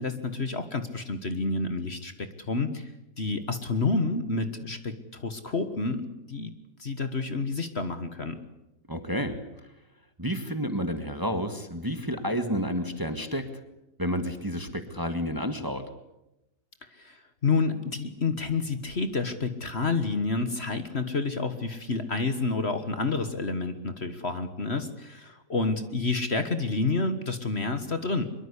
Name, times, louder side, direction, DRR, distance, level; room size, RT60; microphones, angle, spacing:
voice 1, 0.0-2.9 3.2-6.5 6.8-8.4 16.9-28.2, left 3 dB, 40° left, 9 dB, 1.7 m, -29 dB
voice 2, 8.9-9.4 10.2-13.5 14.0-15.9, equal, 15° right, 8 dB, 1.6 m, -30 dB
23.5 x 23.0 x 8.3 m, 0.90 s
omnidirectional pair, 1.7 m